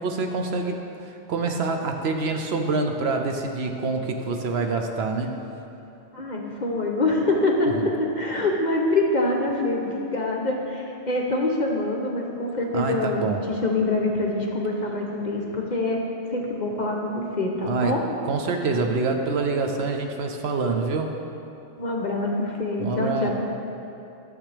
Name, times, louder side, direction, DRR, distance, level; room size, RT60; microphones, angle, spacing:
voice 1, 0.0-5.4 7.7-7.9 12.7-13.4 17.6-17.9 18.2-21.1 22.8-23.3, right 3 dB, 65° right, 4 dB, 0.8 m, -26 dB
voice 2, 6.1-16.0 16.3-18.0 21.8-23.3, left 2 dB, 45° left, 0 dB, 0.8 m, -25 dB
12.0 x 6.7 x 3.3 m, 2.8 s
omnidirectional pair, 1.2 m